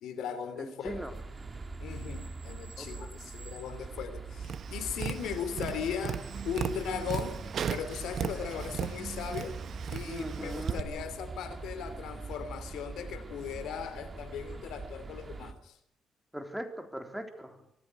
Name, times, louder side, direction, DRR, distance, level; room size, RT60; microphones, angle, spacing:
voice 1, 0.0-1.0 1.8-7.4 7.7-9.6 9.9-15.8, left 7 dB, 80° left, 12 dB, 3.3 m, -38 dB
voice 2, 0.6-1.1 2.8-3.1 10.1-10.8 16.3-17.6, equal, 5° right, 5 dB, 3.7 m, -39 dB
sound 1, 0.8-15.5, right 3 dB, 30° right, 2.5 m, -43 dB
Tap, 4.4-10.8, right 8 dB, 60° right, 1.5 m, -37 dB
24.5 x 15.0 x 9.6 m, 0.76 s
cardioid pair, 90°, 0 cm